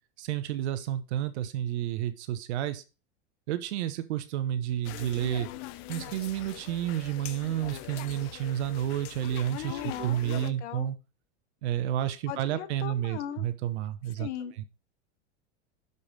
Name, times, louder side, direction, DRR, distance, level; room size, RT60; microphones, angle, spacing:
voice 1, 0.2-2.8 3.5-5.5 5.9-11.0 11.6-14.3 14.6-14.7, right 11 dB, 80° right, 11 dB, 1.0 m, -31 dB
sound 1, 4.8-10.5, left 14 dB, 55° left, 0.7 m, -42 dB
voice 2, 9.7-10.9 12.3-13.5 14.2-14.6, left 11 dB, 85° left, 13 dB, 1.0 m, -38 dB
6.7 x 5.5 x 4.0 m, 0.31 s
supercardioid pair, 115°, 33 cm